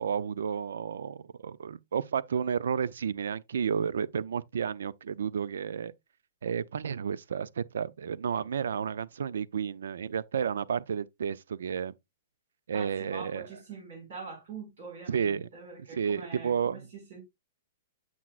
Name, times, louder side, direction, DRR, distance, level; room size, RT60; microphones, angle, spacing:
voice 1, 0.0-5.9 6.4-11.9 12.7-13.5 15.1-15.5 15.9-16.9, right 7 dB, 90° right, 0.4 m, -31 dB
voice 2, 12.7-17.2, right 5 dB, 60° right, 4.7 m, -44 dB
7.4 x 5.9 x 2.4 m
hypercardioid pair, 175°, 0 cm